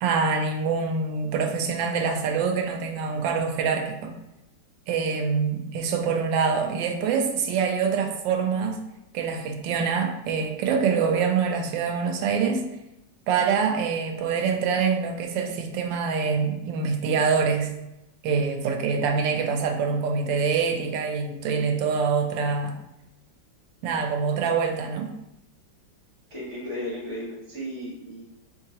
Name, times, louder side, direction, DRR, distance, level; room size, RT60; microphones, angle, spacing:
voice 1, 0.0-4.1 4.9-8.8 9.1-12.6 13.3-17.7 18.2-22.8 23.8-25.1, right 5 dB, 90° right, 4 dB, 1.3 m, -25 dB
voice 2, 26.3-28.2, equal, 40° right, -7 dB, 1.9 m, -34 dB
3.7 x 3.3 x 2.8 m, 0.90 s
omnidirectional pair, 2.0 m